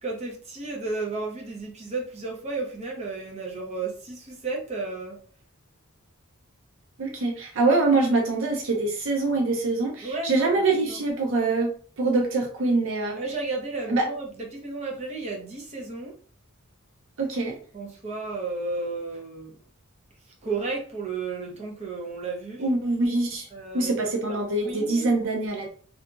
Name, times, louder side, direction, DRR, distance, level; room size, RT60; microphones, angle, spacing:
voice 1, 0.0-5.2 10.0-11.0 13.2-16.1 17.7-19.6 20.4-22.6 23.5-24.0 24.3-25.1, right 3 dB, 30° right, 0.7 m, -33 dB
voice 2, 7.0-13.2 13.9-14.1 17.2-17.6 22.6-23.5 23.7-25.7, right 3 dB, 65° right, 0.5 m, -24 dB
2.7 x 2.4 x 2.4 m
head